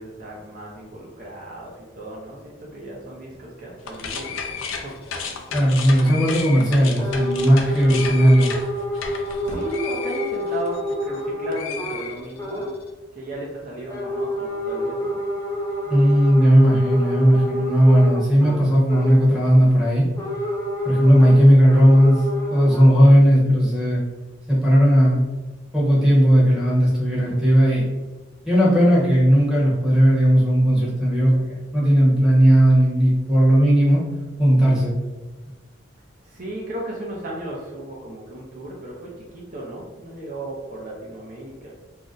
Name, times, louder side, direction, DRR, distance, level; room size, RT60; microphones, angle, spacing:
voice 1, 0.0-5.0 9.2-12.7 13.1-15.2 36.2-41.7, right 1 dB, 40° right, -4 dB, 0.5 m, -35 dB
sound 1, 3.8-11.2 11.5-12.7, left 5 dB, 80° left, 0.4 m, -33 dB
voice 2, 5.5-8.5 15.9-20.0 20.8-22.2 22.5-24.0 24.5-25.3 25.7-27.9 28.4-34.0 34.4-34.9, equal, 5° right, -7 dB, 0.8 m, -16 dB
sound 2, 7.0-12.1 12.4-12.7 13.9-19.3 20.2-22.9, equal, 15° left, 0.4 m, -28 dB
2.6 x 2.1 x 3.6 m, 1.2 s
head